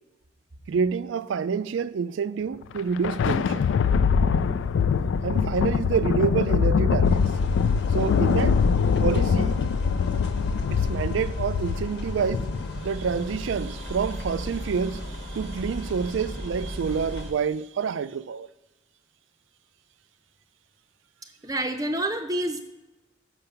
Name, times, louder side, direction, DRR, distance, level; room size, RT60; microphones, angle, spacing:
voice 1, 0.7-3.7 5.2-7.2 7.9-8.6 9.0-9.6 10.7-12.5 12.8-18.5, right 6 dB, 80° right, 0.4 m, -28 dB
Thunder, 2.6-13.4, left 6 dB, 75° left, 0.3 m, -23 dB
sound 1, 7.0-17.3, left 1 dB, 60° left, 1.2 m, -35 dB
voice 2, 21.4-22.6, right 1 dB, 20° right, 0.6 m, -27 dB
7.0 x 5.8 x 6.8 m
head